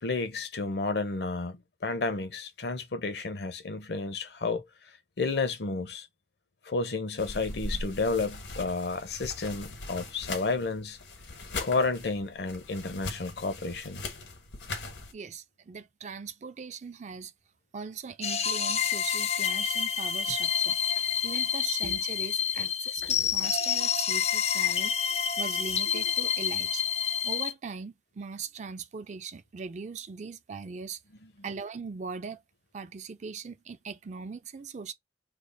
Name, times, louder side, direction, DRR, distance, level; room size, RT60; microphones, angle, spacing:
voice 1, 0.0-4.7 5.2-6.1 6.7-11.0 11.6-14.0 21.8-22.0 22.6-22.7 23.0-23.5 25.9-26.1, left 3 dB, 70° left, 0.7 m, -31 dB
sound 1, 7.2-15.1, left 2 dB, 85° left, 1.2 m, -40 dB
voice 2, 15.1-17.3 17.7-20.8 21.2-24.9 25.4-26.8 27.2-31.0 31.4-32.4 32.7-34.9, right 5 dB, 40° right, 0.4 m, -40 dB
sound 2, 18.2-27.5, left 8 dB, 35° left, 0.4 m, -28 dB
3.3 x 2.1 x 3.9 m
head